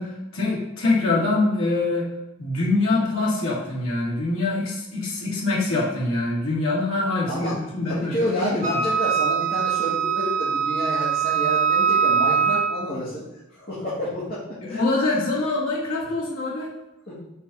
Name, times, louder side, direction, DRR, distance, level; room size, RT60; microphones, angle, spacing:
voice 1, 0.0-2.1 2.4-8.8 14.6-16.7, left 2 dB, 80° left, -6 dB, 2.0 m, -24 dB
voice 2, 7.9-13.2 13.5-14.4 14.7-14.8 17.1-17.2, equal, 45° left, -10 dB, 2.0 m, -29 dB
Wind instrument woodwind instrument, 8.6-12.8, right 7 dB, 35° right, 0.8 m, -22 dB
5.5 x 4.1 x 5.4 m, 0.97 s
head